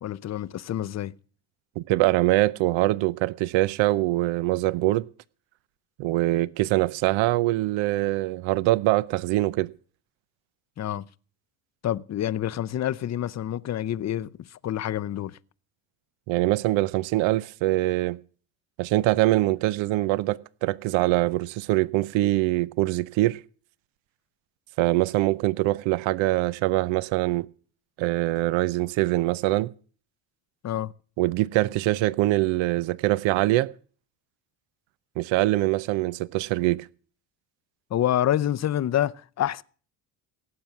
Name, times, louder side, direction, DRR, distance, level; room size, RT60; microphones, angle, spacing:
voice 1, 0.0-1.1 10.8-11.1 11.8-15.4 30.6-30.9 37.9-39.6, left 11 dB, 35° left, 0.6 m, -27 dB
voice 2, 1.8-5.1 6.0-9.7 16.3-18.2 18.8-23.4 24.8-27.5 28.0-29.7 31.2-33.7 35.2-36.9, right 17 dB, 70° right, 0.7 m, -23 dB
17.5 x 7.8 x 7.1 m
supercardioid pair, 90°, 48 cm